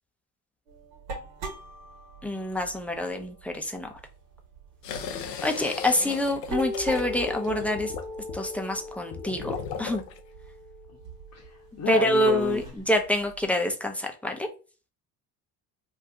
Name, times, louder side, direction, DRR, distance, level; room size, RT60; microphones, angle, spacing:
sound 1, 0.7-4.7 5.1-5.3 5.6-13.5, left 1 dB, 65° right, 1.4 m, -39 dB
voice 1, 2.2-3.9 5.4-7.9 8.3-10.0 11.9-14.5, left 1 dB, 5° left, 3 dB, 0.5 m, -26 dB
sound 2, 4.8-10.2, left 6 dB, 85° left, 0.6 m, -37 dB
voice 2, 11.3-12.7, left 6 dB, 35° left, 0 dB, 0.9 m, -32 dB
2.9 x 2.3 x 3.5 m, 0.34 s
hypercardioid pair, 60°, 48 cm